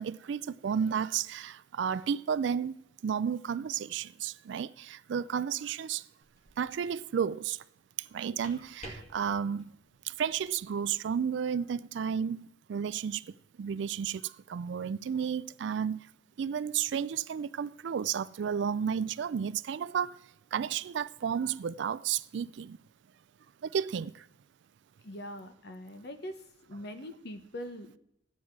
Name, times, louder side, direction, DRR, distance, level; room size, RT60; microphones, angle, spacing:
voice 1, 0.0-2.8 3.0-6.0 6.6-7.6 8.0-9.7 10.0-13.3 13.6-16.1 16.4-20.2 20.5-22.8 23.6-24.3, right 7 dB, 65° right, 0.3 m, -32 dB
sound 1, 6.2-6.8 8.1-10.7, equal, 35° left, 2.3 m, -51 dB
voice 2, 25.0-26.4 26.7-28.0, equal, 60° left, 1.1 m, -42 dB
13.0 x 9.3 x 4.6 m
head